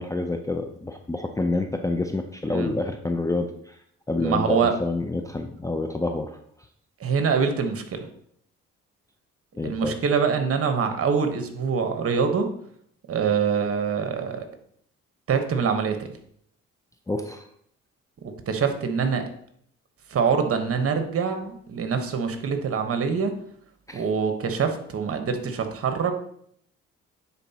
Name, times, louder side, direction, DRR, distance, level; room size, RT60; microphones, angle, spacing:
voice 1, 0.0-3.8 4.1-6.4 9.6-10.0 17.1-17.4 23.9-24.0, left 2 dB, 10° left, 5 dB, 0.5 m, -28 dB
voice 2, 4.2-4.8 7.0-8.1 9.6-12.5 13.1-14.4 15.3-16.1 18.5-19.2 20.1-23.3 23.9-26.1, right 6 dB, 50° right, 6 dB, 1.1 m, -24 dB
9.7 x 4.1 x 2.9 m, 0.68 s
supercardioid pair, 65°, 29 cm